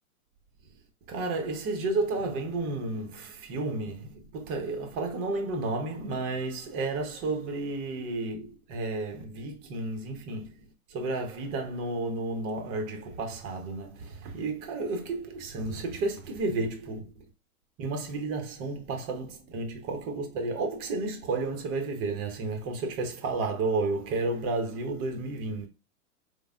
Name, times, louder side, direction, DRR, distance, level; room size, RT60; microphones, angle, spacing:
voice 1, 1.1-10.6 10.9-17.2 17.8-25.7, right 3 dB, 30° right, 0.9 m, -32 dB
4.8 x 2.1 x 2.4 m
hypercardioid pair, 115°, 44 cm